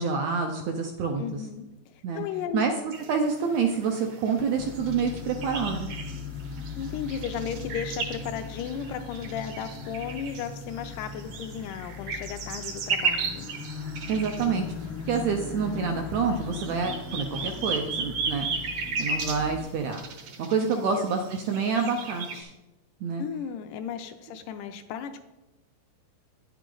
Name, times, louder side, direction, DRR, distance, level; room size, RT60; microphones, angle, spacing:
voice 1, 0.0-1.2 2.0-2.2 2.5-5.9 14.1-14.6 15.1-18.4 19.0-20.0 20.4-22.5 23.0-23.2, right 5 dB, 85° right, 4 dB, 1.5 m, -27 dB
voice 2, 1.2-2.7 6.8-13.5 20.9-21.1 23.2-25.2, left 8 dB, 80° left, 8 dB, 1.9 m, -35 dB
sound 1, 2.9-22.4, right 4 dB, 70° right, 1.4 m, -36 dB
sound 2, 4.5-19.6, left 5 dB, 65° left, 1.2 m, -39 dB
10.0 x 8.2 x 3.8 m, 1.0 s
omnidirectional pair, 4.1 m